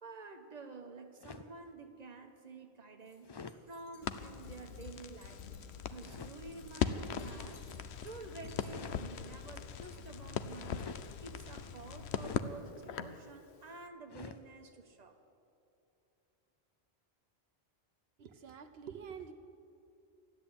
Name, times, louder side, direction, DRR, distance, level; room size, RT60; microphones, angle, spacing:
voice 1, 0.0-5.4 5.8-7.7 8.0-15.2, right 3 dB, 40° right, 5 dB, 1.2 m, -50 dB
sound 1, 1.2-1.6 3.2-3.6 6.0-6.4 8.5-9.0 10.7-11.1 12.1-12.5 14.1-14.4, left 4 dB, 40° left, 0.3 m, -47 dB
sound 2, 3.0-12.5, left 1 dB, 60° left, 2.6 m, -62 dB
Crackle, 4.0-13.2, left 8 dB, 85° left, 0.9 m, -40 dB
voice 2, 18.2-19.3, right 7 dB, 75° right, 7 dB, 1.0 m, -47 dB
13.5 x 10.0 x 8.6 m, 2.7 s
omnidirectional pair, 1.1 m